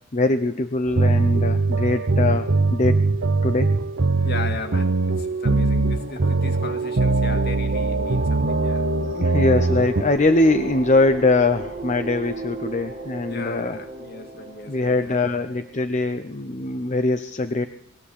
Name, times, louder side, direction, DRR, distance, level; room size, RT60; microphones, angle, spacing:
voice 1, 0.1-3.1 3.4-3.7 9.0-13.8 14.7-17.7, left 2 dB, 35° left, 0.7 m, -22 dB
sound 1, 0.9-10.0, right 3 dB, 60° right, 0.8 m, -21 dB
voice 2, 4.2-8.9 9.3-9.4 13.3-15.2, left 3 dB, 50° left, 2.1 m, -36 dB
sound 2, 5.5-15.7, right 1 dB, 30° right, 1.7 m, -34 dB
22.5 x 16.0 x 8.5 m
head